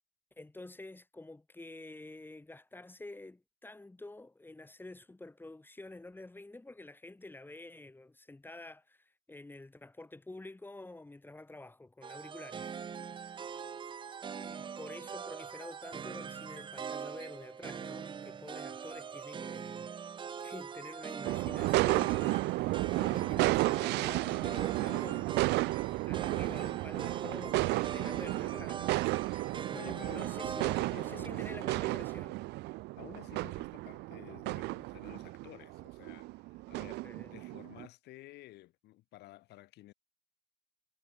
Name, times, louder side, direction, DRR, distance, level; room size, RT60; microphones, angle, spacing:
voice 1, 0.4-12.7 13.4-13.6 14.3-19.9 20.4-25.3 25.8-28.8 29.7-32.4 37.0-37.3, left 2 dB, 10° left, 3.0 m, -49 dB
sound 1, 12.0-31.3, right 7 dB, 30° right, 0.6 m, -43 dB
sound 2, 21.2-37.9, right 21 dB, 90° right, 0.8 m, -33 dB
voice 2, 29.3-31.8 33.0-37.0 37.3-39.9, left 17 dB, 80° left, 3.7 m, -53 dB
cardioid pair, 110°, 17 cm